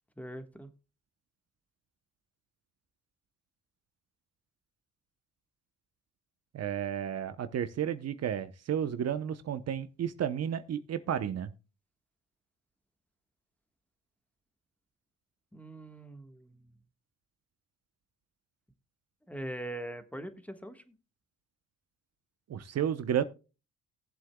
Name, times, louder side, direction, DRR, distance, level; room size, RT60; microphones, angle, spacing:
voice 1, 0.2-0.7 15.5-16.7 19.3-20.9, right 1 dB, 5° left, 1.5 m, -42 dB
voice 2, 6.5-11.5 22.5-23.2, right 9 dB, 55° right, 0.9 m, -32 dB
18.5 x 7.7 x 2.3 m
cardioid pair, 90°, 30 cm